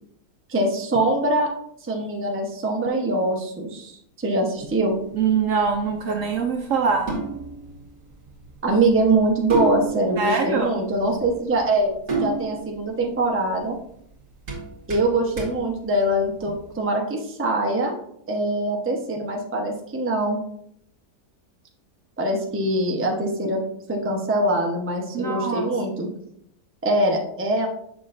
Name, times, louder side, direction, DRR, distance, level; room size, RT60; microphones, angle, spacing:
voice 1, 0.5-1.5 1.8-5.0 8.6-11.9 12.2-13.8 14.9-17.9 18.3-20.4 22.2-23.6 23.9-26.1 26.8-27.7, right 1 dB, 15° right, 0 dB, 0.5 m, -23 dB
sound 1, 4.6-16.7, right 3 dB, 50° right, 1.9 m, -33 dB
voice 2, 5.1-7.1 10.2-10.7 25.1-25.7, right 5 dB, 70° right, 4 dB, 0.8 m, -23 dB
7.0 x 6.1 x 2.5 m, 0.71 s
omnidirectional pair, 1.8 m